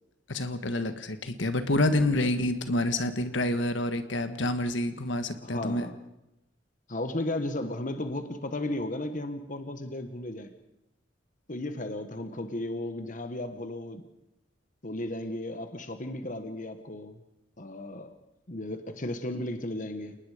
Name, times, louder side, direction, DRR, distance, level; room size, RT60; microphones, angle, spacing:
voice 1, 0.3-5.9, left 1 dB, 70° left, 9 dB, 1.5 m, -28 dB
voice 2, 1.8-2.3 5.4-6.0 6.9-10.5 11.5-14.0 14.8-17.2 17.6-18.1 18.5-20.2, left 1 dB, 45° left, 8 dB, 1.4 m, -35 dB
29.5 x 19.5 x 5.1 m, 0.89 s
head